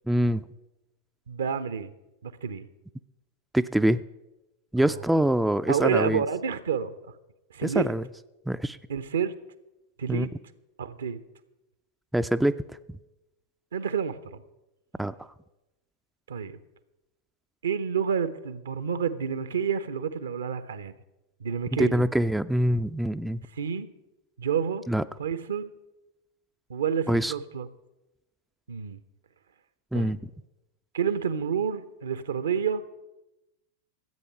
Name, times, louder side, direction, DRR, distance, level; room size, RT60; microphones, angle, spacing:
voice 1, 0.1-0.4 3.5-4.0 4.7-6.2 7.6-8.0 8.5-8.8 10.1-10.3 12.1-12.6 15.0-15.3 21.8-23.4 24.9-25.0 27.1-27.3 29.9-30.2, right 1 dB, 5° right, 12 dB, 0.3 m, -24 dB
voice 2, 1.3-1.9 2.2-2.7 4.8-5.0 5.7-6.9 7.5-7.8 8.9-9.3 10.0-10.3 10.8-11.2 13.7-14.4 16.3-16.5 17.6-20.9 21.4-22.0 23.6-23.9 24.4-24.8 25.2-25.7 26.7-27.7 28.7-29.0 29.9-30.1 30.9-32.8, right 7 dB, 65° right, 14 dB, 0.7 m, -29 dB
13.5 x 8.4 x 5.7 m, 0.97 s
figure-of-eight pair, 90°, 0 cm